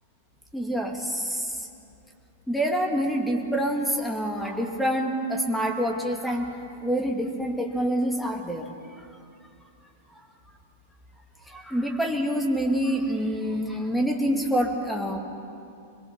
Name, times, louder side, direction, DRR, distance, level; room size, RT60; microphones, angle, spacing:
voice 1, 0.5-1.6 2.5-6.6 6.8-8.7 11.5-15.2, equal, ahead, 2 dB, 2.3 m, -26 dB
24.5 x 21.0 x 7.3 m, 2.5 s
figure-of-eight pair, 100°, 0 cm